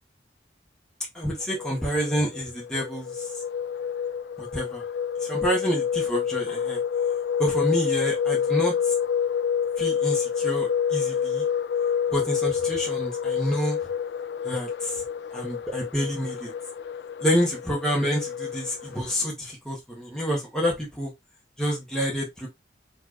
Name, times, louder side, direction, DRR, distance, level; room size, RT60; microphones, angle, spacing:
voice 1, 1.1-3.3 4.4-4.8 5.3-6.8 7.4-8.9 9.8-11.4 12.1-13.8 14.4-15.0 15.3-16.5 17.2-21.1 21.6-22.5, equal, 5° left, 1.6 m, -28 dB
sound 1, 1.4-19.1, left 7 dB, 70° left, 0.4 m, -28 dB
4.4 x 3.5 x 3.1 m
head